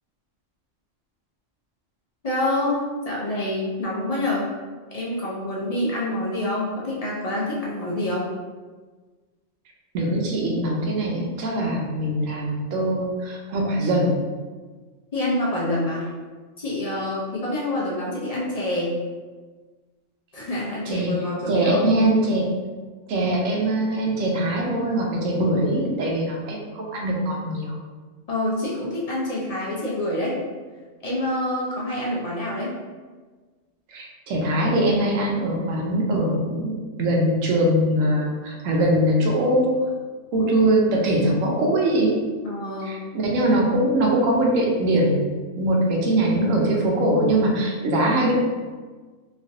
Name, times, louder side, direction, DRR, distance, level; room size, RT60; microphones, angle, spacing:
voice 1, 2.2-4.5 4.9-8.3 15.1-16.1 16.6-19.0 20.3-21.9 28.3-30.4 31.0-32.7 42.4-43.1, left 1 dB, 50° left, -6 dB, 0.4 m, -27 dB
voice 2, 9.9-14.1 20.9-21.1 21.5-22.5 23.1-27.8 33.9-39.7 40.3-42.2 42.8-45.3 45.6-48.3, right 1 dB, 80° right, -1 dB, 1.0 m, -22 dB
3.1 x 2.5 x 2.5 m, 1.4 s
omnidirectional pair, 1.3 m